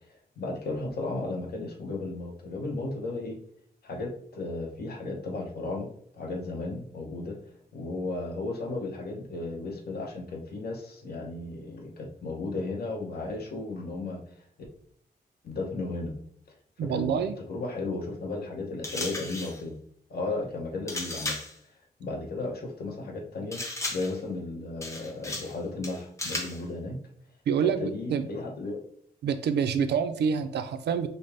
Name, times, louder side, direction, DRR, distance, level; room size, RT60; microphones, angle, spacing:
voice 1, 0.4-3.4 3.8-5.9 6.1-7.4 7.7-14.2 15.4-16.1 16.9-17.2 17.5-19.7 20.1-21.4 22.0-23.6 23.9-27.0 27.6-28.8, left 2 dB, 65° left, 1 dB, 0.9 m, -34 dB
voice 2, 16.8-17.4 27.5-28.3 29.2-31.1, right 7 dB, 90° right, 9 dB, 0.4 m, -27 dB
sound 1, 18.8-19.6 20.9-21.6 23.5-24.2 24.8-25.6 25.8-26.6, left 2 dB, 15° left, 0.7 m, -35 dB
5.4 x 2.0 x 3.3 m, 0.64 s
wide cardioid pair, 135°, 17 cm